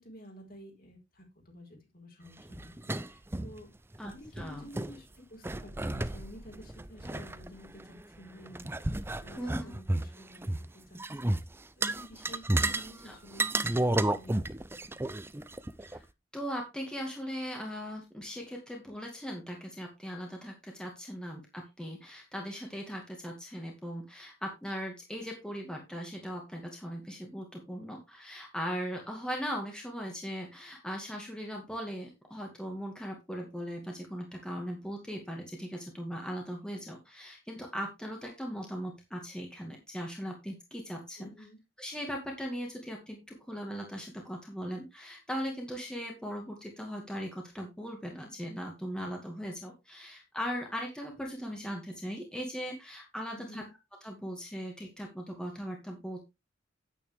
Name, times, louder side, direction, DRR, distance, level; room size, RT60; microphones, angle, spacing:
voice 1, 0.0-3.7 4.1-11.3 11.9-13.4 13.9-15.0 41.2-41.6 53.3-53.7, equal, 50° left, 2 dB, 4.8 m, -51 dB
sound 1, 2.4-3.6 3.9-4.0 4.3-4.9 5.4-8.0 8.5-10.6 10.9-11.4 11.8-12.9 13.3-16.0, right 1 dB, 10° right, 0.5 m, -32 dB
voice 2, 4.0-4.7 9.4-9.7 12.7-13.2 15.8-16.0 16.3-41.3 41.8-53.6 54.0-56.2, equal, 5° left, 0 dB, 2.2 m, -39 dB
9.9 x 9.0 x 3.5 m, 0.24 s
head